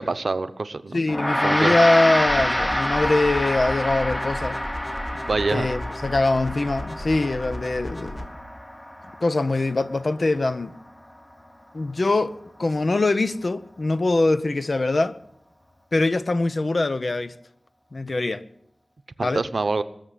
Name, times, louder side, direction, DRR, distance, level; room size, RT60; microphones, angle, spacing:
voice 1, 0.0-1.0 1.4-1.7 5.3-5.7 19.2-19.8, right 3 dB, 65° right, 0.8 m, -25 dB
voice 2, 0.9-4.6 5.5-8.3 9.2-10.8 11.7-12.3 12.6-15.2 15.9-17.3 17.9-18.4 19.2-19.4, left 2 dB, 55° left, 0.8 m, -23 dB
Gong, 1.1-10.7, equal, 15° left, 1.0 m, -28 dB
sound 1, 2.3-8.3, left 1 dB, 30° left, 2.2 m, -35 dB
21.0 x 7.1 x 9.0 m
wide cardioid pair, 80°, 0 cm